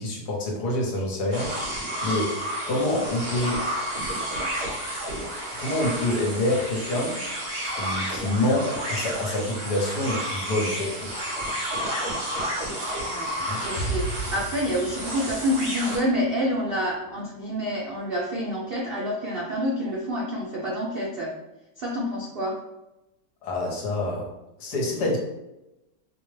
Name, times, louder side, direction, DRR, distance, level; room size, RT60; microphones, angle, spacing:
voice 1, 0.0-1.6 2.0-3.7 5.6-7.2 7.6-11.1 13.5-13.6 23.4-24.3 24.6-25.2, left 1 dB, 70° left, -1 dB, 1.4 m, -27 dB
sound 1, 1.3-16.0, equal, 60° right, 1.9 m, -31 dB
voice 2, 13.1-21.3 21.8-22.6, equal, 80° right, -4 dB, 0.5 m, -28 dB
Explosion, 13.8-17.5, right 2 dB, 90° left, 1.2 m, -35 dB
5.0 x 2.1 x 3.2 m, 0.94 s
omnidirectional pair, 1.9 m